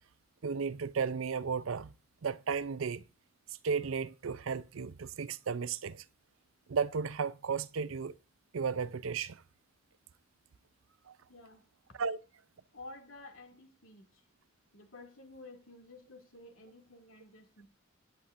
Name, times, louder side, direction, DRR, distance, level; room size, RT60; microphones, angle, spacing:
voice 1, 0.4-1.9 2.2-3.0 3.6-6.0 6.7-8.1 8.5-9.4 11.1-11.2 12.0-12.2, right 5 dB, 85° right, 0.5 m, -34 dB
voice 2, 11.3-11.7 12.7-14.2 14.7-17.7, left 2 dB, 85° left, 2.5 m, -52 dB
17.0 x 9.4 x 2.6 m
head